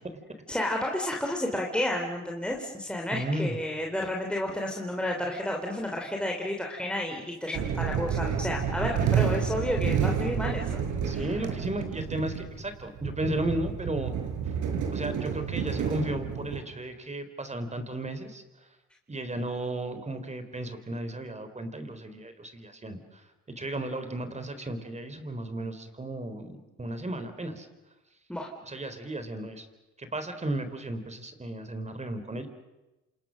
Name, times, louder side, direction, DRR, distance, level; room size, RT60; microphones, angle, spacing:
voice 1, 0.5-10.7 11.1-11.2 28.3-28.5, left 1 dB, 5° left, 0 dB, 3.5 m, -31 dB
voice 2, 3.1-3.6 11.0-14.1 14.4-14.5 14.9-18.7 19.1-27.7 28.6-29.7 30.0-32.5, right 1 dB, 20° right, 9 dB, 3.9 m, -34 dB
sound 1, 7.5-16.6, right 7 dB, 80° right, 5.0 m, -30 dB
28.0 x 27.5 x 6.5 m, 1.0 s
cardioid pair, 90°, 30 cm